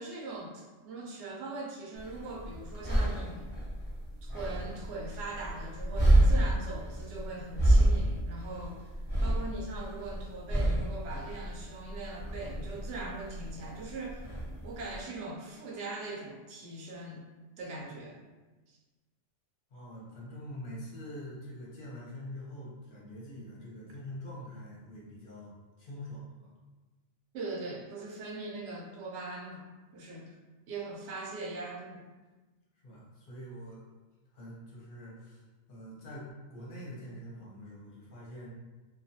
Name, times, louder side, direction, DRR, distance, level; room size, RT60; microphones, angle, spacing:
voice 1, 0.0-3.5 4.2-8.9 9.2-14.2 14.6-17.2 17.6-18.2 27.3-29.6 29.9-30.4 30.7-32.0, right 2 dB, 70° right, -2 dB, 0.9 m, -41 dB
sound 1, 2.0-15.0, right 1 dB, 30° right, 0.4 m, -29 dB
voice 2, 19.7-26.5 32.7-33.8 34.3-35.4 35.7-38.5, equal, 50° left, -5 dB, 0.8 m, -45 dB
2.4 x 2.2 x 2.6 m, 1.2 s
omnidirectional pair, 1.3 m